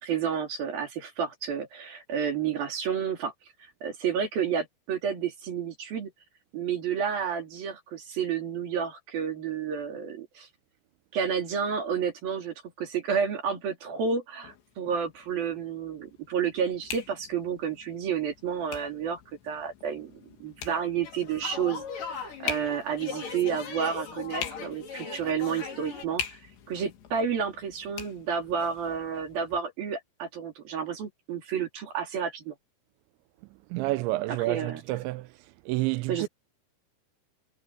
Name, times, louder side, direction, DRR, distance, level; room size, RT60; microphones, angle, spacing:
voice 1, 0.0-3.3 3.8-6.1 6.5-10.5 11.1-26.4 26.7-32.5 34.3-34.8 36.1-36.3, right 7 dB, 50° right, 4.6 m, -31 dB
sound 1, 14.4-29.6, left 8 dB, 65° left, 4.7 m, -43 dB
sound 2, 21.0-26.1, left 6 dB, 45° left, 5.4 m, -39 dB
voice 2, 33.7-35.3 35.7-36.3, right 19 dB, 80° right, 2.7 m, -29 dB
omnidirectional pair, 5.5 m